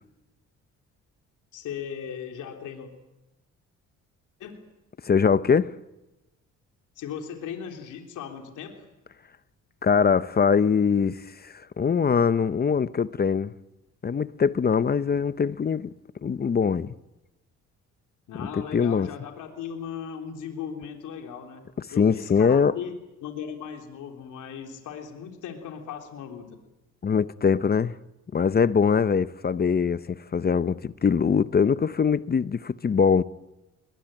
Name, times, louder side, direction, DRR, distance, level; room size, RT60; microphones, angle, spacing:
voice 1, 1.5-2.9 4.4-4.6 7.0-8.9 18.3-21.6 21.9-22.9 23.2-26.6, left 7 dB, 80° left, 3.6 m, -37 dB
voice 2, 5.0-5.7 9.8-13.5 14.0-15.9 16.2-16.9 18.4-19.1 22.0-22.7 27.0-27.9 28.3-33.2, left 6 dB, 30° left, 0.8 m, -22 dB
21.5 x 21.5 x 9.0 m
cardioid pair, 90°, 30 cm